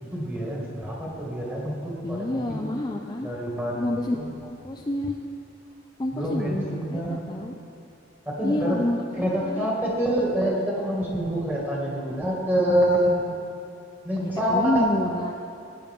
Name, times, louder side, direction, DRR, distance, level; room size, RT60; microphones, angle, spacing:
voice 1, 0.0-2.7 3.2-4.2 6.1-7.2 8.3-8.8 9.2-13.3 14.0-14.9, equal, 10° right, -4 dB, 1.9 m, -26 dB
voice 2, 2.0-3.3 3.7-4.2 4.4-5.2 6.0-7.5 8.4-9.7 14.2-15.3, left 1 dB, 20° left, 1 dB, 0.4 m, -28 dB
16.5 x 9.0 x 3.6 m, 2.5 s
head